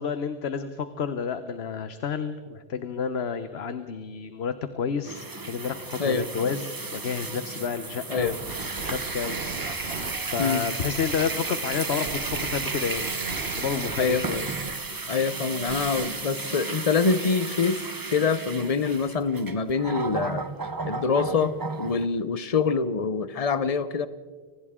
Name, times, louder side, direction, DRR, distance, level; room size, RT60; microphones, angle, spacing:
voice 1, 0.0-8.4 8.8-9.4 9.7-13.2 13.5-14.5, left 6 dB, 85° left, 10 dB, 1.1 m, -30 dB
sound 1, 5.0-22.1, right 3 dB, 25° right, 0.7 m, -33 dB
sound 2, 8.2-14.7 15.1-15.2 15.5-16.1, right 4 dB, 75° right, 1.6 m, -38 dB
voice 2, 15.1-17.8 18.1-20.4 20.9-24.1, left 5 dB, 40° left, 13 dB, 0.9 m, -25 dB
29.5 x 24.5 x 3.7 m, 1.5 s
omnidirectional pair, 1.0 m